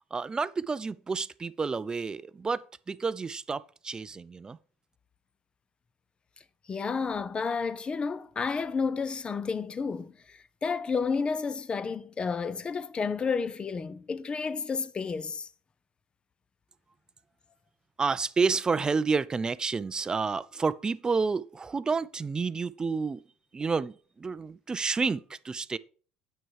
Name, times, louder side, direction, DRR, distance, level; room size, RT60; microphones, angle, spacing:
voice 1, 0.1-4.6 18.0-23.2 23.5-25.8, right 4 dB, 25° right, 0.5 m, -30 dB
voice 2, 6.7-15.5, left 5 dB, 30° left, 0.8 m, -31 dB
9.2 x 6.1 x 4.7 m
hypercardioid pair, 80°, 3 cm